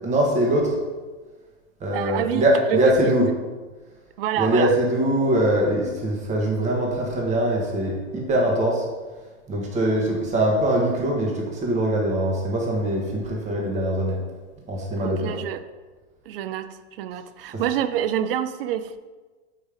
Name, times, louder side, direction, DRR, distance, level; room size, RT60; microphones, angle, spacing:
voice 1, 0.0-0.7 1.8-3.3 4.4-8.8 9.5-14.2 14.7-15.4, right 1 dB, 20° right, -1 dB, 1.4 m, -22 dB
voice 2, 1.9-3.1 4.2-4.7 15.0-15.6 16.3-19.0, right 10 dB, 50° right, 12 dB, 0.5 m, -27 dB
5.3 x 4.3 x 5.0 m, 1.3 s
hypercardioid pair, 130°, 36 cm